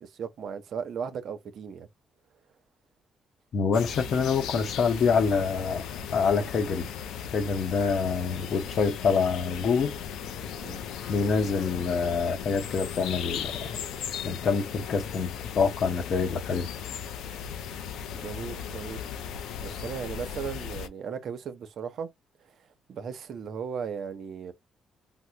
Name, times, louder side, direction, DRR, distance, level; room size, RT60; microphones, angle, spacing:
voice 1, 0.0-1.9 10.6-10.8 18.1-19.0 19.6-22.1 22.9-24.5, right 6 dB, 65° right, 0.7 m, -36 dB
voice 2, 3.5-5.8 6.1-6.9 7.3-9.9 11.1-13.8 14.2-16.7, left 5 dB, 60° left, 0.8 m, -26 dB
sound 1, 3.7-20.9, left 8 dB, 85° left, 0.5 m, -37 dB
3.7 x 2.1 x 2.7 m
cardioid pair, 90°, 0 cm